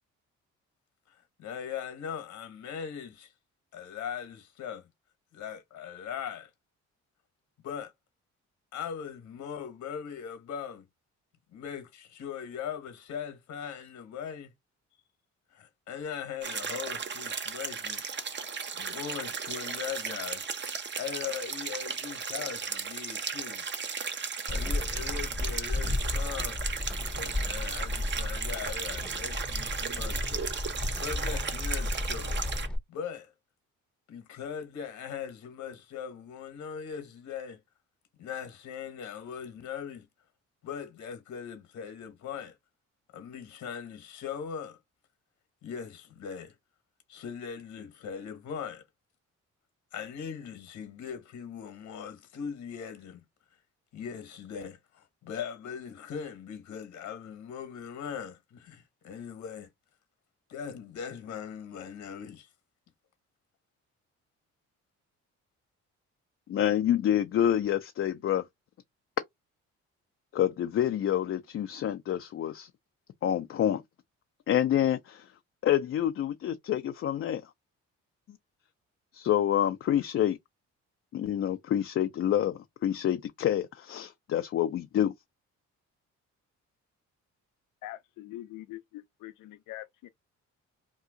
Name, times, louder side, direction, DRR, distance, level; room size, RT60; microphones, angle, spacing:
voice 1, 1.4-3.3 3.7-4.9 5.3-6.5 7.6-7.9 8.7-10.8 11.5-14.5 15.5-18.0 18.8-20.5 21.0-23.6 24.2-26.6 27.1-30.5 31.0-32.4 32.9-33.3 34.1-37.6 38.2-40.1 40.6-42.5 43.1-44.8 45.6-46.5 47.1-48.8 49.9-53.2 53.9-59.7 60.5-62.5, left 7 dB, 70° left, 1.1 m, -40 dB
sound 1, 16.4-32.7, right 5 dB, 35° right, 0.8 m, -35 dB
sound 2, 24.5-32.8, left 2 dB, 5° left, 0.7 m, -33 dB
voice 2, 66.5-68.4 70.3-72.7 73.2-73.8 74.5-75.3 75.6-77.4 79.1-80.4 81.1-85.1, left 11 dB, 45° left, 0.4 m, -27 dB
voice 3, 87.8-90.1, left 15 dB, 90° left, 0.6 m, -43 dB
2.7 x 2.3 x 3.7 m
cardioid pair, 90°, 30 cm